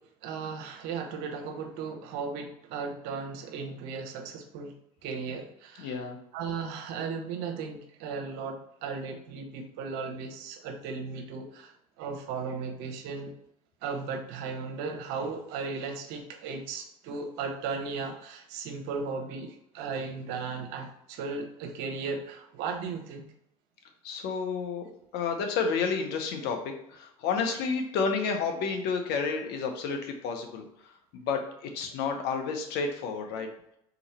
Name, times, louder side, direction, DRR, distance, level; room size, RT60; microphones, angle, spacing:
voice 1, 0.2-4.7 5.0-6.1 6.3-13.3 13.8-23.3, right 5 dB, 65° right, 4 dB, 0.9 m, -36 dB
voice 2, 5.8-6.2 24.0-24.8 25.1-30.6 31.1-33.5, left 5 dB, 65° left, 4 dB, 0.9 m, -30 dB
3.9 x 3.0 x 4.2 m, 0.77 s
hypercardioid pair, 70°, 18 cm